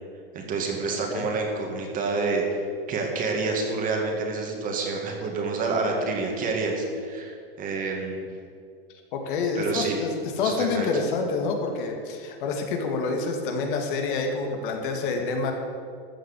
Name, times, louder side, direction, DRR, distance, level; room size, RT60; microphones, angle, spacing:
voice 1, 0.3-8.3 9.6-10.0 10.4-10.9, right 3 dB, 25° right, 1 dB, 2.2 m, -28 dB
voice 2, 9.1-15.5, left 4 dB, 55° left, 3 dB, 2.2 m, -27 dB
14.0 x 6.4 x 8.3 m, 2.3 s
hypercardioid pair, 135°, 30 cm